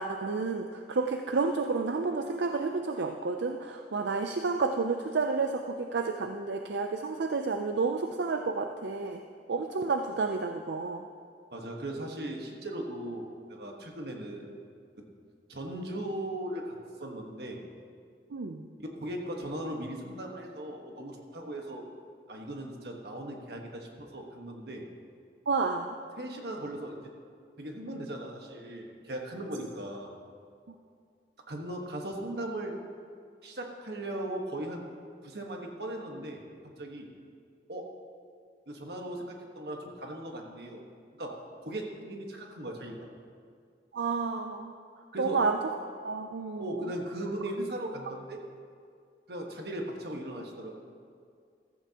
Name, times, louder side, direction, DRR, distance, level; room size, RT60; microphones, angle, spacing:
voice 1, 0.0-9.2 9.5-11.1 18.3-18.7 25.5-25.9 30.7-30.8 43.9-44.7 45.2-45.6 46.0-46.9, right 4 dB, 80° right, 5 dB, 0.5 m, -30 dB
voice 2, 11.5-14.5 15.5-17.6 18.9-21.8 22.3-24.8 26.2-27.0 27.6-30.1 31.5-32.7 33.4-34.9 35.2-37.1 37.7-37.9 38.7-40.8 41.2-41.4 41.6-43.1 45.1-45.4 46.6-48.4 49.3-50.8, right 1 dB, 65° right, 1 dB, 1.4 m, -38 dB
14.5 x 14.0 x 2.9 m, 2.2 s
head